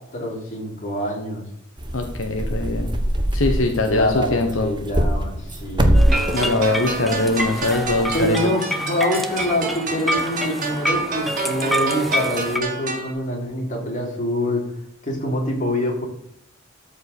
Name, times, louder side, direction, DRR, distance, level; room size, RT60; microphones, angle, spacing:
voice 1, 0.1-1.5 3.9-6.1 8.1-14.6 15.0-16.0, left 1 dB, 40° left, -1 dB, 3.6 m, -25 dB
sound 1, 1.8-8.3, equal, 25° right, 1.1 m, -23 dB
voice 2, 1.9-2.9 3.3-4.7 6.3-8.4, left 2 dB, 75° left, 3 dB, 1.1 m, -22 dB
sound 2, 5.9-12.6, equal, ahead, 1.0 m, -27 dB
sound 3, 6.1-13.1, right 4 dB, 45° right, 2.1 m, -30 dB
12.5 x 5.3 x 6.9 m, 0.72 s
head